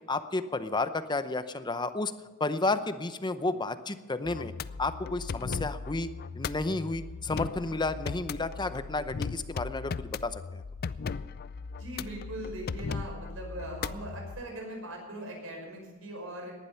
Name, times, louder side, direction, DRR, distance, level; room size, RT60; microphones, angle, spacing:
voice 1, 0.1-2.1 2.4-4.5 4.8-6.1 6.4-10.6, left 2 dB, 20° left, 11 dB, 0.7 m, -31 dB
sound 1, 4.2-14.4, left 5 dB, 50° left, 0.4 m, -37 dB
voice 2, 11.8-16.5, right 1 dB, 75° right, 1 dB, 5.8 m, -40 dB
18.5 x 11.5 x 5.7 m, 1.3 s
head